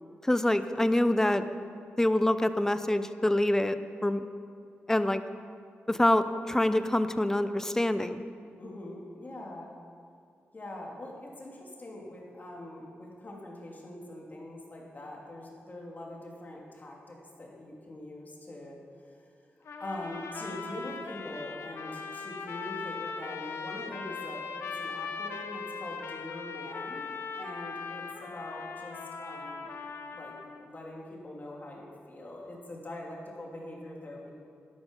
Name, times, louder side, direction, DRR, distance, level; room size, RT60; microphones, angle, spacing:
voice 1, 0.2-1.5 2.0-4.3 4.9-5.2 5.9-8.2, left 1 dB, 10° left, 11 dB, 0.6 m, -26 dB
voice 2, 8.6-9.7 10.5-19.3 19.8-29.7 30.1-34.3, left 1 dB, 40° left, -2 dB, 2.9 m, -43 dB
sound 1, 19.6-30.7, left 5 dB, 85° left, 1.0 m, -39 dB
12.5 x 11.5 x 5.4 m, 2.3 s
cardioid pair, 70°, 4 cm